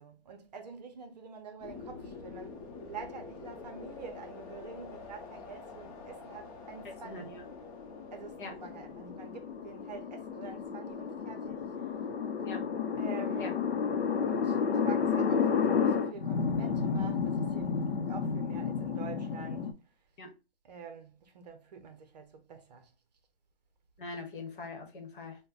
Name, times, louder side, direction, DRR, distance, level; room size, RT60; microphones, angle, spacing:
voice 1, 0.0-7.4 8.1-12.0 13.0-13.6 14.3-19.7 20.6-22.9, right 5 dB, 40° right, 0.6 m, -47 dB
sound 1, 1.6-14.3, left 4 dB, 35° left, 0.9 m, -48 dB
voice 2, 7.0-7.4 8.4-8.5 12.4-12.6 13.4-13.5 20.2-20.3 24.0-25.4, left 3 dB, 55° left, 1.1 m, -42 dB
sound 2, 7.2-19.7, left 6 dB, 85° left, 0.6 m, -31 dB
5.2 x 2.2 x 2.4 m
hypercardioid pair, 160°, 31 cm